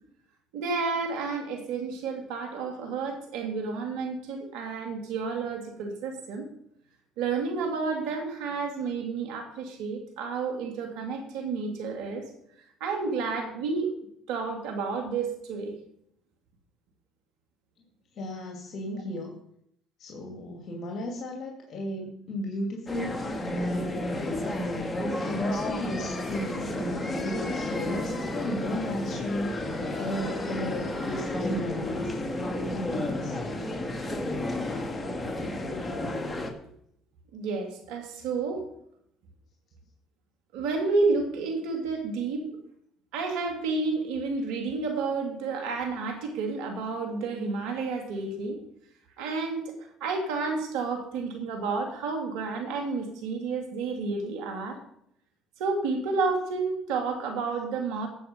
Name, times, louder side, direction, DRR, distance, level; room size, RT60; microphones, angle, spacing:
voice 1, 0.5-6.5 7.2-12.2 12.8-13.9 14.3-15.7 18.9-19.0 37.3-38.6 40.5-42.4 43.1-48.6 49.2-54.8 55.6-58.1, right 4 dB, 80° right, 3 dB, 3.0 m, -30 dB
voice 2, 18.1-19.4 20.0-24.7 25.2-32.2 32.7-33.5, left 1 dB, 55° left, 0 dB, 2.6 m, -35 dB
sound 1, 22.9-36.5, left 1 dB, 25° left, 2.4 m, -31 dB
14.5 x 8.0 x 5.6 m, 0.72 s
hypercardioid pair, 65°, 0 cm